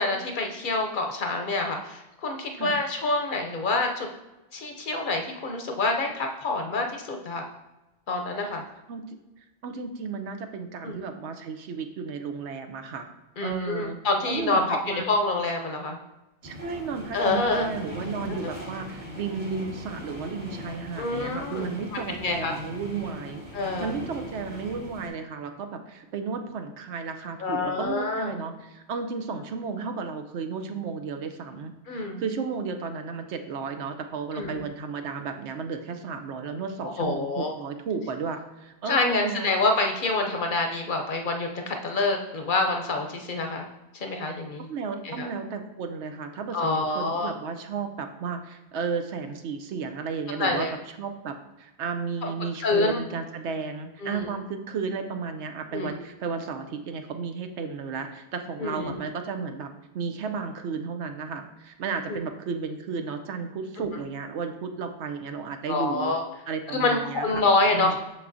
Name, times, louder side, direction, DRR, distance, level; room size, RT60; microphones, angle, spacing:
voice 1, 0.0-4.1 4.5-7.4 8.1-8.6 10.8-11.0 13.4-16.0 17.1-17.7 18.4-18.5 21.0-22.5 23.5-23.9 27.4-28.3 31.9-32.2 34.3-34.6 37.0-37.5 38.9-43.7 43.9-44.7 45.0-45.3 46.5-47.3 50.4-50.7 52.2-52.3 52.6-53.0 54.0-54.3 55.7-55.9 58.6-59.0 62.1-62.2 63.8-63.9 65.7-66.2 66.7-68.0, left 3 dB, 55° left, 3 dB, 0.7 m, -27 dB
voice 2, 9.6-13.1 13.4-14.0 14.3-15.1 16.4-39.5 44.7-50.7 51.0-66.2 66.5-67.5 67.7-68.0, right 5 dB, 90° right, 7 dB, 1.0 m, -33 dB
sound 1, 16.4-25.1, equal, 45° right, 1.6 m, -39 dB
6.2 x 6.0 x 2.6 m, 1.0 s
omnidirectional pair, 1.1 m